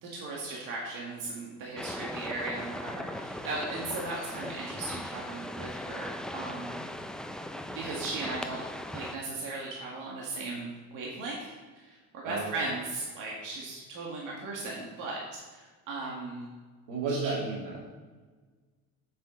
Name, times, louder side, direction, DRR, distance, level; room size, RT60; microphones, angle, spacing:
voice 1, 0.0-6.8 7.7-8.6 8.9-16.5 17.1-17.3, right 2 dB, 65° right, -3 dB, 1.8 m, -37 dB
sound 1, 1.8-9.2, left 1 dB, ahead, 0.4 m, -39 dB
voice 2, 12.2-12.7 16.9-17.8, right 3 dB, 85° right, -2 dB, 2.3 m, -33 dB
7.1 x 6.7 x 3.8 m, 1.4 s
supercardioid pair, 90°, 34 cm